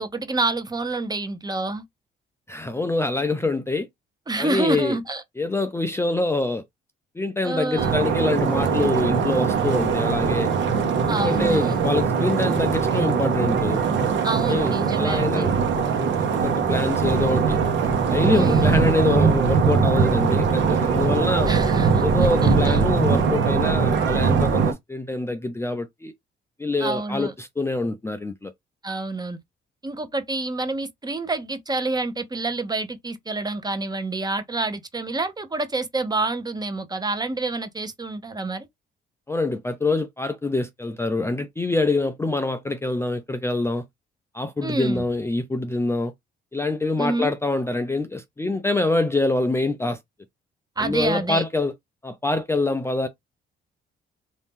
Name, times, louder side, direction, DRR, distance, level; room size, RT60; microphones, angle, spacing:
voice 1, 0.0-1.8 4.3-5.2 7.4-7.9 11.1-11.8 14.2-15.5 18.3-18.9 21.5-22.8 26.8-27.3 28.8-29.4 29.8-38.7 44.6-45.1 47.0-47.3 50.8-51.4, right 2 dB, 20° right, 0.8 m, -28 dB
voice 2, 2.5-3.9 4.4-5.0 5.4-6.6 7.2-10.5 11.0-13.8 14.5-15.5 16.2-17.6 18.1-21.5 22.0-26.1 26.6-28.5 39.3-43.9 44.3-46.1 46.5-50.0 50.8-51.7 52.0-53.1, left 2 dB, 15° left, 0.5 m, -25 dB
sound 1, 7.8-24.7, right 5 dB, 70° right, 1.0 m, -21 dB
2.9 x 2.7 x 3.6 m
cardioid pair, 90°, 20 cm